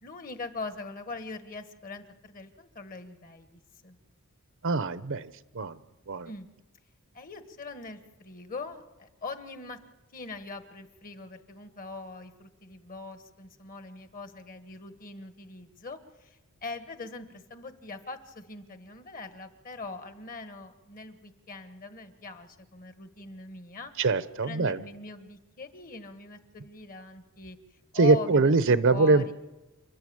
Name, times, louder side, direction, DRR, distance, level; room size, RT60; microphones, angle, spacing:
voice 1, 0.0-4.0 6.2-6.5 7.1-9.8 10.1-23.9 24.4-27.6 27.9-29.3, left 3 dB, 40° left, 9 dB, 1.5 m, -42 dB
voice 2, 4.6-5.3 5.5-5.8 6.1-6.3 24.0-24.8 27.9-29.3, right 3 dB, 60° right, 14 dB, 0.8 m, -23 dB
29.0 x 11.5 x 8.7 m, 1.1 s
head